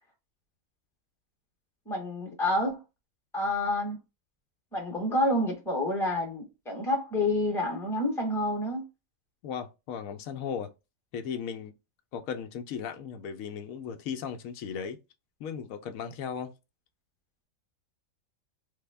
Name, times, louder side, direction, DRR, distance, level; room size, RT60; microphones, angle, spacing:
voice 1, 1.9-2.8 3.3-4.0 4.7-8.8, left 1 dB, ahead, 0.8 m, -28 dB
voice 2, 9.4-10.7 11.1-11.7 12.1-15.0 15.4-16.5, left 7 dB, 80° left, 1.0 m, -36 dB
3.3 x 2.1 x 3.3 m
omnidirectional pair, 1.4 m